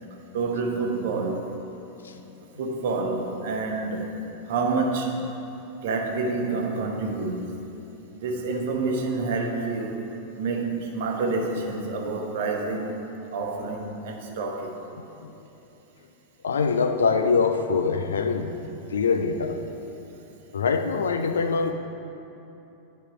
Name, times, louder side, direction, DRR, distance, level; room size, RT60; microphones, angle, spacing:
voice 1, 0.3-1.6 2.6-4.2 4.5-5.2 5.8-7.7 8.1-10.0 10.4-14.8, right 3 dB, 55° right, 2 dB, 0.9 m, -28 dB
voice 2, 16.4-18.6 18.9-19.6 20.5-21.7, left 5 dB, 65° left, 7 dB, 0.5 m, -23 dB
8.9 x 5.7 x 4.8 m, 2.9 s
figure-of-eight pair, 90°, 0 cm